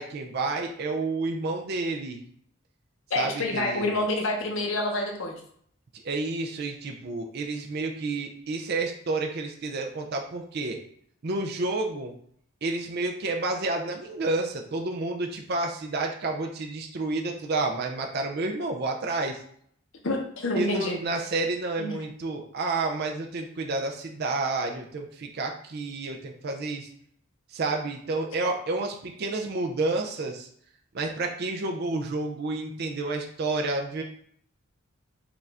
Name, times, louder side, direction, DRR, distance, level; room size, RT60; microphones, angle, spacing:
voice 1, 0.0-2.2 3.1-3.9 6.0-10.8 11.2-12.1 12.6-19.4 20.6-26.9 27.5-30.5 30.9-34.0, right 3 dB, 50° right, 2 dB, 0.4 m, -30 dB
voice 2, 3.1-5.4 20.0-21.0 21.8-22.0, left 2 dB, 70° left, 1 dB, 0.8 m, -27 dB
4.9 x 2.5 x 3.3 m, 0.64 s
head